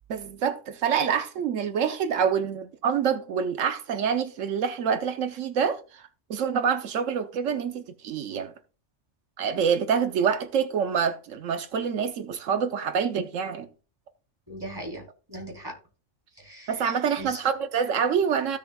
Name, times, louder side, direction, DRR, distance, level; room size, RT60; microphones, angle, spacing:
voice 1, 0.1-6.0 6.3-8.5 9.4-13.7 16.7-18.6, right 7 dB, 85° right, 1.1 m, -26 dB
voice 2, 14.5-15.7 16.4-16.9 17.2-17.4, right 1 dB, 20° right, 3.6 m, -39 dB
15.5 x 7.0 x 2.3 m
omnidirectional pair, 1.3 m